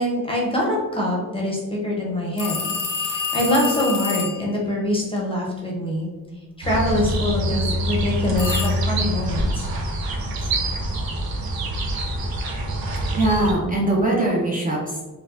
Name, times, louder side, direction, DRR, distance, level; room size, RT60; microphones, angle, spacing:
voice 1, 0.0-2.6 2.9-6.1 6.6-9.7 10.4-10.5, left 1 dB, 15° left, -4 dB, 0.7 m, -24 dB
sound 1, 2.4-4.5 8.4-8.7, left 5 dB, 60° left, 0.6 m, -27 dB
sound 2, 6.6-13.5, right 1 dB, 80° right, 0.6 m, -25 dB
voice 2, 13.2-15.0, right 2 dB, 25° right, -4 dB, 0.6 m, -21 dB
4.4 x 2.3 x 2.5 m, 1.3 s
wide cardioid pair, 160°, 35 cm